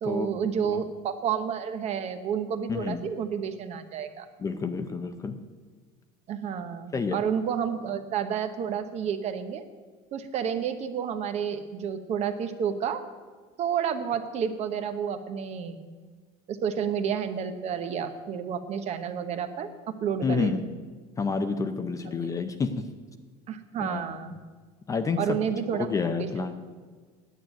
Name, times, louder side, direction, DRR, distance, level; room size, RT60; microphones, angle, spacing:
voice 1, 0.0-4.3 6.3-9.6 10.1-13.0 13.6-15.9 16.5-20.5 22.1-22.2 23.5-24.4 25.2-25.9 26.4-26.5, right 7 dB, 40° right, 9 dB, 0.9 m, -30 dB
voice 2, 2.7-3.0 4.4-5.3 6.9-7.2 20.2-20.6 21.2-22.8 23.8-24.0 24.9-25.4 25.7-26.5, left 4 dB, 20° left, 9 dB, 0.6 m, -29 dB
9.4 x 8.9 x 8.9 m, 1.4 s
cardioid pair, 155°, 17 cm